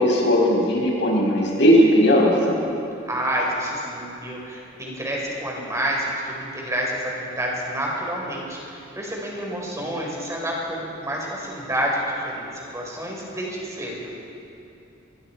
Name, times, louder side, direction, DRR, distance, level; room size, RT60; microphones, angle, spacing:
voice 1, 0.0-2.6, equal, 65° left, -2 dB, 5.8 m, -17 dB
voice 2, 3.1-14.1, right 1 dB, 15° right, -2 dB, 4.9 m, -29 dB
25.5 x 22.5 x 4.7 m, 2.8 s
head